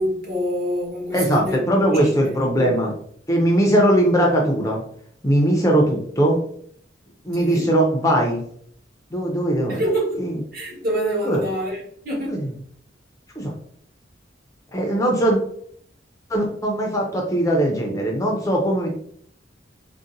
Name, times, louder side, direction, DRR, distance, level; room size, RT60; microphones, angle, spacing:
voice 1, 0.0-1.6 1.9-2.1 2.5-2.8 6.2-6.3 7.4-7.7 9.7-10.2 10.5-12.4, equal, 55° right, 1.3 m, -26 dB
voice 2, 1.1-2.9 3.3-4.8 5.2-6.4 7.2-8.4 9.1-9.8 10.2-10.4 11.2-11.4 12.3-12.5 13.4-13.6 14.7-15.4 16.3-18.9, right 1 dB, 15° left, 0.4 m, -20 dB
3.8 x 2.1 x 2.5 m
head